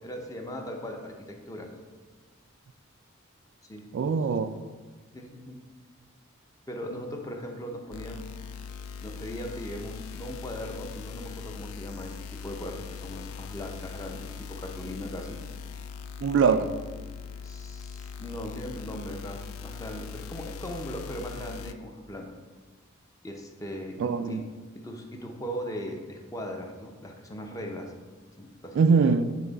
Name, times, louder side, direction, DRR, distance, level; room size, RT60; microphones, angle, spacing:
voice 1, 0.0-1.7 3.6-3.9 5.1-5.6 6.7-8.3 9.0-12.1 12.4-15.4 16.4-16.6 17.3-22.4 23.2-24.5 24.7-27.9 28.4-28.8, equal, 15° left, 2 dB, 0.6 m, -39 dB
voice 2, 3.9-4.5 16.2-16.7 24.0-24.4 28.8-29.3, right 5 dB, 60° right, 10 dB, 0.3 m, -22 dB
sound 1, 7.9-21.7, left 6 dB, 75° left, 0.3 m, -41 dB
7.5 x 3.5 x 4.0 m, 1.3 s
head